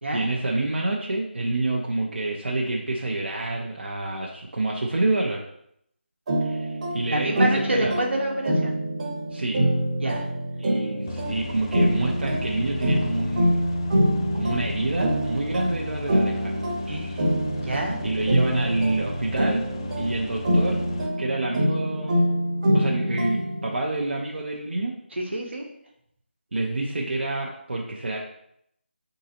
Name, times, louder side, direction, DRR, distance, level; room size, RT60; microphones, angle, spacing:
voice 1, 0.1-5.4 6.4-7.9 9.3-9.6 10.6-13.7 14.3-16.6 18.0-19.6 20.0-20.8 21.2-22.3 22.7-24.9 26.5-28.2, right 2 dB, 70° right, -2 dB, 0.7 m, -28 dB
sound 1, 6.3-23.7, equal, 40° right, 1.0 m, -25 dB
voice 2, 7.1-8.8 10.0-10.3 16.9-17.3 17.6-18.0 25.1-25.7, right 1 dB, 90° right, -1 dB, 1.1 m, -28 dB
sound 2, 11.1-21.1, left 2 dB, 25° left, 0.3 m, -36 dB
4.8 x 3.8 x 2.8 m, 0.74 s
figure-of-eight pair, 160°, 6 cm